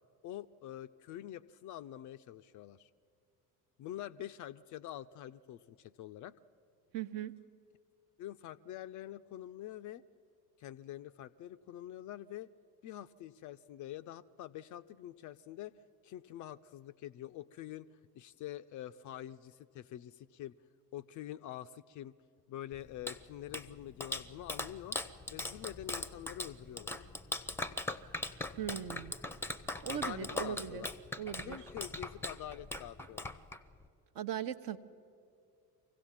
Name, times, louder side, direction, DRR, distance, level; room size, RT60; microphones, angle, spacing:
voice 1, 0.2-2.9 3.8-6.4 8.2-10.0 10.6-12.5 12.8-17.9 18.1-20.5 20.9-22.1 22.5-25.0 25.3-27.0 29.9-30.9 31.4-33.4, left 12 dB, 40° left, 12 dB, 0.5 m, -46 dB
voice 2, 6.9-7.3 28.6-29.1 29.8-30.9 31.2-31.6 34.1-34.8, right 10 dB, 45° right, 10 dB, 0.8 m, -39 dB
Clapping, 22.7-33.9, left 2 dB, 5° left, 0.7 m, -41 dB
24.5 x 16.5 x 7.3 m, 2.5 s
figure-of-eight pair, 60°, 47 cm